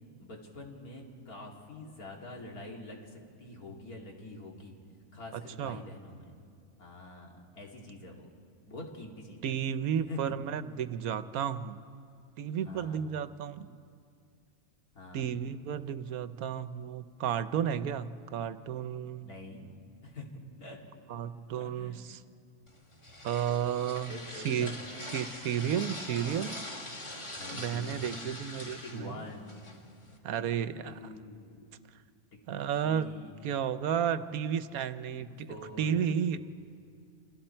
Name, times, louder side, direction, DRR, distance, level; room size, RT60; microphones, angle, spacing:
voice 1, 0.2-4.8 5.1-6.4 6.8-8.3 8.7-9.4 10.1-10.3 12.6-13.0 14.9-15.4 19.2-19.7 20.0-20.8 21.6-22.0 24.1-24.8 27.3-28.4 28.8-29.6 30.6-31.7 32.8-33.4 35.5-36.1, left 2 dB, 85° left, -1 dB, 3.1 m, -45 dB
voice 2, 5.3-5.8 9.4-11.8 12.4-13.8 15.1-19.3 21.1-22.2 23.2-24.7 25.1-26.6 27.5-29.2 30.2-30.9 32.5-33.1 33.4-36.4, right 8 dB, 80° right, 13 dB, 1.2 m, -32 dB
sound 1, 22.7-30.2, left 1 dB, 20° left, 1.7 m, -43 dB
29.0 x 26.0 x 4.4 m, 2.3 s
omnidirectional pair, 1.5 m